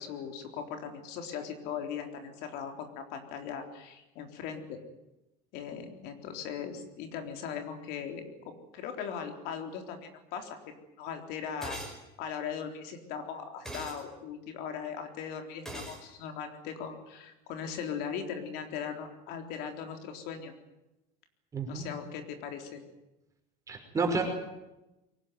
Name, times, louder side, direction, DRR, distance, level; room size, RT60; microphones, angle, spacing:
voice 1, 0.0-4.8 5.5-11.8 12.2-20.5 21.7-22.8, left 7 dB, 60° left, 5 dB, 3.9 m, -39 dB
sound 1, 11.6-12.0 13.6-14.0 15.6-16.0, right 1 dB, ahead, 5.3 m, -40 dB
voice 2, 21.5-21.8 23.7-24.2, right 4 dB, 15° right, 3 dB, 5.5 m, -30 dB
23.5 x 19.0 x 9.5 m, 0.96 s
cardioid pair, 160°, 18 cm